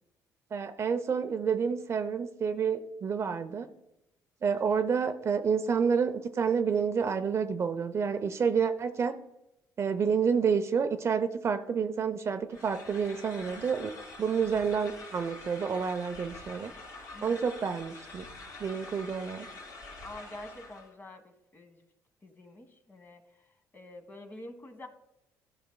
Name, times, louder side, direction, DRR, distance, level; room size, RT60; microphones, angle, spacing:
voice 1, 0.5-3.7 4.4-9.1 9.8-13.9 14.2-16.7 17.2-18.2 18.6-19.5, right 6 dB, 40° right, 8 dB, 0.6 m, -29 dB
sound 1, 12.5-20.9, left 2 dB, 55° left, 2.8 m, -46 dB
voice 2, 20.0-21.8 22.2-23.2 23.7-24.9, left 1 dB, 30° left, 6 dB, 1.3 m, -47 dB
12.0 x 5.8 x 2.2 m, 0.85 s
supercardioid pair, 85°, 7 cm